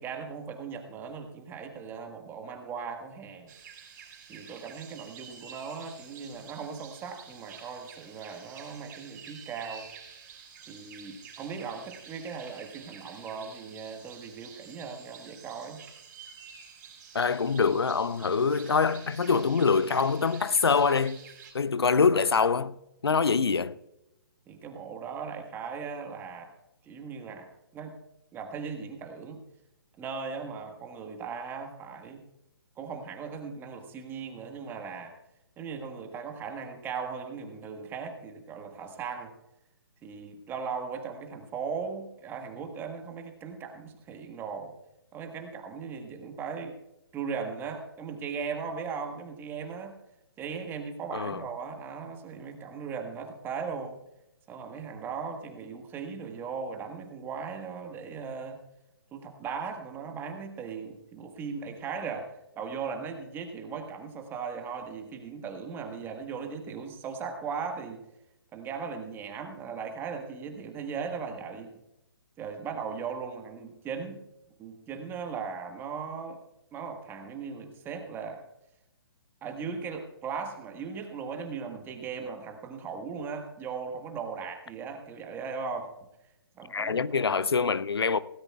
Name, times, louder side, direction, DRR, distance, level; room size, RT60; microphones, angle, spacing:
voice 1, 0.0-3.5 4.3-9.9 10.7-15.8 23.1-23.2 24.5-26.5 26.8-28.0 28.3-29.4 30.0-32.2 32.8-35.1 35.6-39.3 40.0-44.7 45.1-46.8 47.1-50.0 50.4-53.9 54.5-58.6 59.1-68.0 68.5-71.7 72.4-74.2 74.6-76.4 76.7-78.4 79.4-85.9 86.6-87.3, right 5 dB, 15° right, 1.5 m, -38 dB
sound 1, 3.5-21.5, right 7 dB, 40° right, 5.0 m, -49 dB
voice 2, 17.1-21.2 21.5-22.7 23.0-23.8 51.1-51.4 86.7-88.2, left 5 dB, 80° left, 0.6 m, -25 dB
18.0 x 17.5 x 2.4 m
figure-of-eight pair, 135°, 13 cm